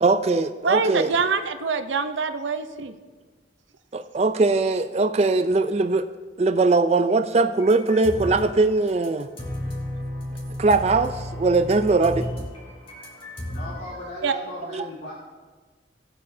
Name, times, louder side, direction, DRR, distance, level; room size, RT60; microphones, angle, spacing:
voice 1, 0.0-1.1 3.9-6.1 6.4-9.3 10.6-12.2 14.7-14.8, right 3 dB, 35° right, 7 dB, 0.4 m, -20 dB
voice 2, 0.6-3.0 12.9-13.1 13.9-14.0 14.2-14.3, right 5 dB, 85° right, 8 dB, 0.7 m, -25 dB
sound 1, 7.6-8.5 8.9-13.7, left 1 dB, 30° left, 2.3 m, -33 dB
voice 3, 13.5-15.1, left 1 dB, 70° left, -7 dB, 2.1 m, -37 dB
18.0 x 8.4 x 2.7 m, 1.4 s
head